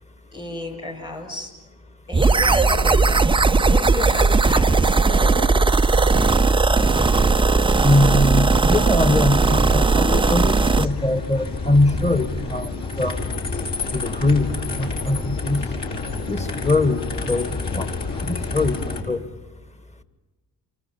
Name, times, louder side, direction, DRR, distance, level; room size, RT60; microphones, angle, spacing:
voice 1, 0.3-1.5 2.1-3.2 3.5-5.4, left 1 dB, 85° left, -3 dB, 5.5 m, -32 dB
sound 1, 2.1-10.9, right 3 dB, 10° right, 0.7 m, -17 dB
voice 2, 7.8-13.2 13.9-14.5 14.8-15.7 16.2-17.9 18.2-18.8 19.1-19.2, left 2 dB, 15° left, 11 dB, 1.6 m, -22 dB
sound 2, 10.5-19.0, left 3 dB, 55° left, 5.1 m, -29 dB
28.5 x 24.5 x 5.7 m, 1.2 s
hypercardioid pair, 40°, 49 cm